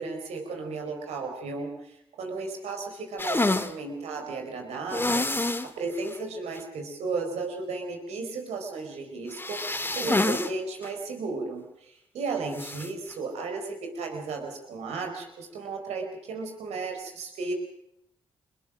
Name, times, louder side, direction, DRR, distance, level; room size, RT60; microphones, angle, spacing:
voice 1, 0.0-9.7 9.9-17.5, right 4 dB, 80° right, 4 dB, 4.5 m, -34 dB
sound 1, 3.2-3.7 4.9-5.7 6.1-6.2 6.6-6.7 9.3-10.5 10.8-10.9 12.5-12.9, left 2 dB, 20° left, 1.7 m, -27 dB
24.0 x 20.5 x 6.2 m, 0.75 s
hypercardioid pair, 45°, 11 cm